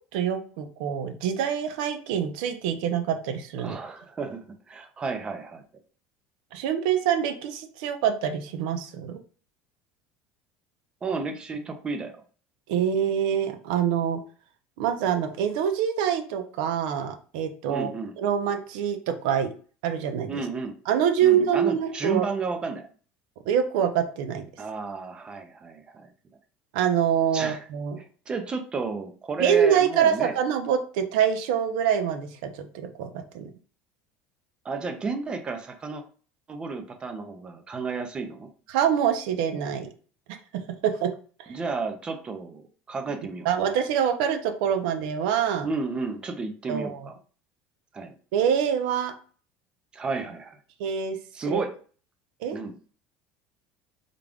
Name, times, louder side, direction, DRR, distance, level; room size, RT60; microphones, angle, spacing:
voice 1, 0.1-3.8 6.5-9.2 12.7-14.2 14.8-17.9 18.2-19.5 19.8-20.4 20.9-22.3 23.5-24.5 26.7-28.0 29.4-33.1 33.3-33.5 38.7-39.9 40.5-41.1 43.4-45.7 46.7-47.1 48.3-49.1 50.8-51.2 51.5-51.6 52.4-52.6, right 8 dB, 85° right, 7 dB, 0.6 m, -25 dB
voice 2, 3.6-5.6 11.0-12.1 17.6-18.1 20.3-20.8 21.2-22.9 24.6-26.1 27.3-27.6 28.0-30.4 34.6-36.0 36.5-38.5 41.5-43.7 45.6-47.1 47.9-48.1 49.9-50.6 51.3-51.7 52.5-52.9, right 4 dB, 20° right, 6 dB, 0.5 m, -32 dB
3.7 x 2.3 x 3.5 m, 0.41 s
cardioid pair, 155°, 5 cm